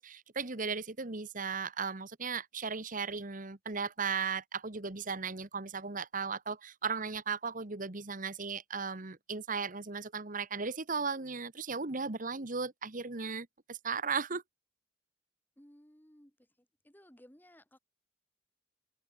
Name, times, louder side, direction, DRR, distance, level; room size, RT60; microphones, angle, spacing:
voice 1, 0.0-14.4, right 5 dB, 45° right, 1.5 m, -36 dB
voice 2, 15.6-17.8, equal, 10° left, 3.5 m, -59 dB
open air
head